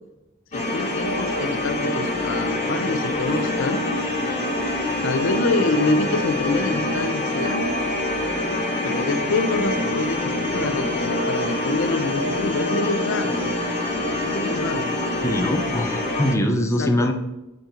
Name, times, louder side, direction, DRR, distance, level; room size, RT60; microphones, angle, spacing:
voice 1, 0.5-4.0 5.0-7.7 8.8-13.5 14.2-15.0 16.6-17.1, left 2 dB, 65° left, 9 dB, 0.6 m, -26 dB
sound 1, 0.5-16.3, left 1 dB, 35° left, 1.5 m, -25 dB
voice 2, 15.2-17.1, left 1 dB, 15° left, 4 dB, 0.6 m, -22 dB
5.5 x 5.4 x 4.4 m, 0.96 s
head